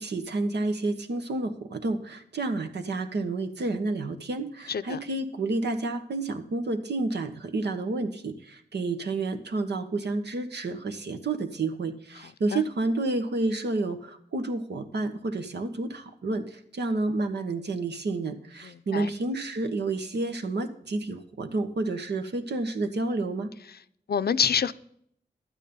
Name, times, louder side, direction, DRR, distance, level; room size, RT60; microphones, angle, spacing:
voice 1, 0.0-23.5, right 2 dB, 85° right, 1.3 m, -30 dB
voice 2, 4.7-5.0 12.5-12.6 18.6-19.1 24.1-24.7, left 7 dB, 70° left, 0.5 m, -27 dB
12.0 x 9.3 x 5.4 m
wide cardioid pair, 75°, 17 cm